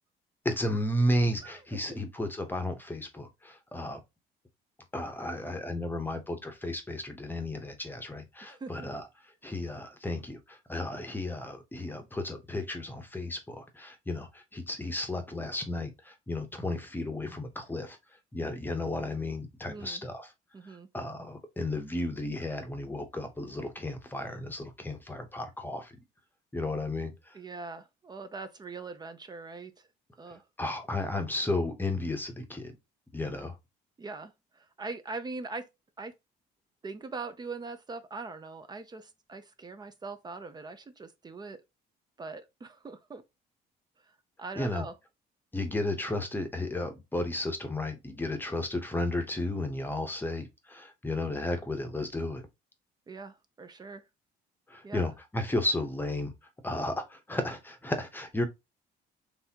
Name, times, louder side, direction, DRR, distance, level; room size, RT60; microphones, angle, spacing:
voice 1, 0.4-4.0 4.9-9.1 9.4-18.0 18.3-20.3 20.9-25.9 26.5-27.4 30.6-32.7 33.1-33.5 44.6-44.9 45.5-52.4 54.7-56.3 56.6-58.4, left 1 dB, 10° left, 0.9 m, -33 dB
voice 2, 8.4-8.9 19.7-20.0 20.5-20.9 27.3-29.7 30.2-30.4 34.0-35.6 36.0-36.1 36.8-41.6 42.2-43.2 44.4-44.9 53.1-54.0 54.8-55.1, right 3 dB, 25° right, 0.6 m, -41 dB
4.0 x 3.3 x 2.8 m
cardioid pair, 110°, 17 cm